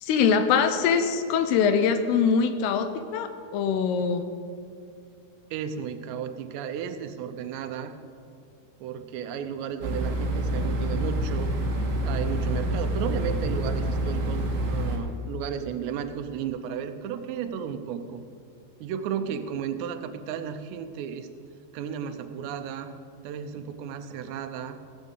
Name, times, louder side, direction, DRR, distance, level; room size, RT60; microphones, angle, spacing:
voice 1, 0.0-4.3, left 6 dB, 80° left, 9 dB, 2.6 m, -23 dB
voice 2, 5.5-8.0 8.8-11.5 12.0-18.2 18.8-21.3 21.7-22.9 23.2-24.8, right 8 dB, 90° right, 9 dB, 3.0 m, -34 dB
sound 1, 9.8-15.0, right 1 dB, 65° right, 3.5 m, -27 dB
16.5 x 6.3 x 8.0 m, 2.4 s
omnidirectional pair, 4.9 m